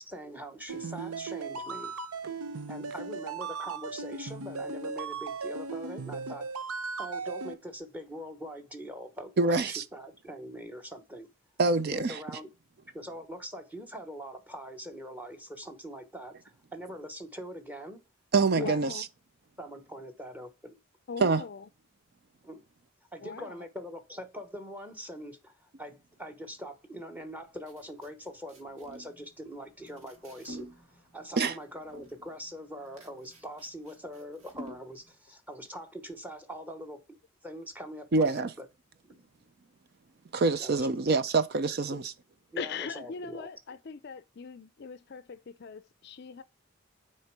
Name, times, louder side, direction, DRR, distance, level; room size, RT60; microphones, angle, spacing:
voice 1, 0.0-2.0 2.7-6.5 7.0-11.3 11.9-12.5 12.9-18.0 18.6-18.7 19.6-20.7 22.4-22.6 23.1-38.7 39.0-39.3 40.6-40.9 41.9-42.0 42.5-43.5, equal, 10° right, 1.0 m, -43 dB
sound 1, 0.7-7.5, right 4 dB, 90° right, 0.8 m, -37 dB
voice 2, 9.4-9.8 11.6-12.2 18.3-19.0 21.2-21.4 31.4-31.5 38.1-38.5 40.3-42.0, right 3 dB, 45° right, 0.5 m, -25 dB
voice 3, 18.6-19.0 21.1-21.7 23.2-23.6 42.6-46.4, left 5 dB, 50° left, 0.4 m, -40 dB
sound 2, 27.2-35.1, equal, 70° right, 1.8 m, -50 dB
6.6 x 4.4 x 4.6 m
head